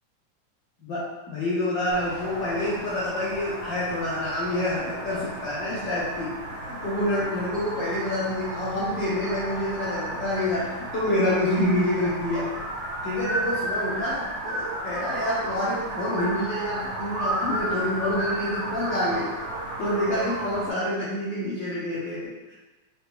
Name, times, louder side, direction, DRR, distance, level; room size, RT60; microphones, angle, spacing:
voice 1, 0.8-12.5 13.0-19.3 19.8-22.5, left 1 dB, 85° left, -8 dB, 1.0 m, -27 dB
sound 1, 1.9-20.7, right 1 dB, 65° right, 0.8 m, -33 dB
4.8 x 2.9 x 3.5 m, 1.2 s
omnidirectional pair, 3.4 m